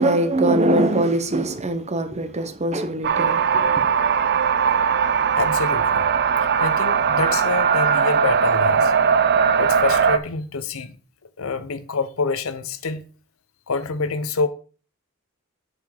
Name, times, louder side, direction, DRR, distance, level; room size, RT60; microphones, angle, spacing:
voice 1, 0.0-3.7, right 1 dB, 30° right, 0.9 m, -22 dB
sound 1, 3.0-10.2, right 6 dB, 50° right, 0.6 m, -19 dB
voice 2, 5.3-6.1 6.6-8.9 9.6-11.0 11.4-13.0 13.7-14.5, left 4 dB, 75° left, 0.8 m, -26 dB
8.0 x 5.7 x 5.0 m
head